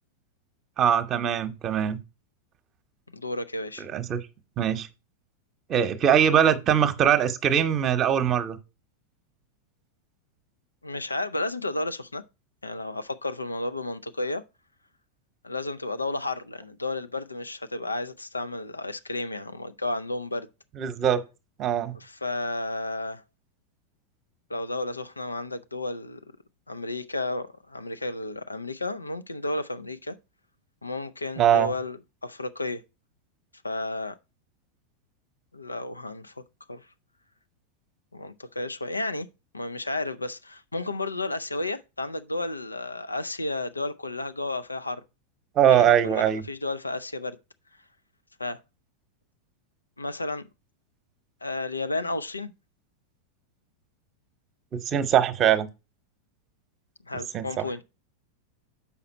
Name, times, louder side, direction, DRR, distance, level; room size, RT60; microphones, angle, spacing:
voice 1, 0.8-2.0 3.9-4.2 4.6-4.9 5.7-8.6 20.8-21.2 21.6-22.0 31.4-31.7 45.6-46.4 54.7-55.7 57.3-57.6, right 9 dB, 30° right, 0.9 m, -22 dB
voice 2, 3.1-3.9 10.8-12.2 12.6-14.4 15.4-20.5 21.9-23.2 24.5-26.2 26.7-30.2 30.8-32.8 33.6-34.2 35.5-36.3 36.7-36.9 38.1-39.3 39.5-45.0 45.7-47.4 48.4-48.6 50.0-50.4 51.4-52.5 57.1-57.8, left 2 dB, 80° left, 0.5 m, -32 dB
7.1 x 5.8 x 4.1 m
figure-of-eight pair, 90°, 0 cm